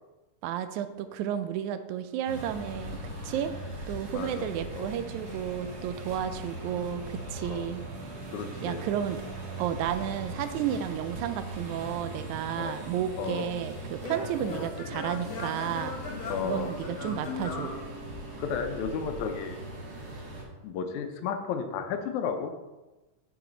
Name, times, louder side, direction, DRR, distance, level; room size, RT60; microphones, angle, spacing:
voice 1, 0.4-3.5 3.9-7.8 8.6-9.2 9.6-16.0 16.4-17.7, right 10 dB, 85° right, 11 dB, 2.0 m, -32 dB
sound 1, 2.2-20.4, right 1 dB, 40° right, 1.6 m, -40 dB
voice 2, 4.1-4.5 4.8-4.9 7.4-7.7 8.3-8.8 12.6-12.8 13.2-13.5 14.4-14.7 16.3-16.7 18.4-19.6 20.6-22.5, left 6 dB, 85° left, 7 dB, 2.1 m, -33 dB
Singing / Plucked string instrument, 12.7-18.6, left 4 dB, 55° left, 1.7 m, -40 dB
8.1 x 5.9 x 3.8 m, 1.1 s
omnidirectional pair, 3.3 m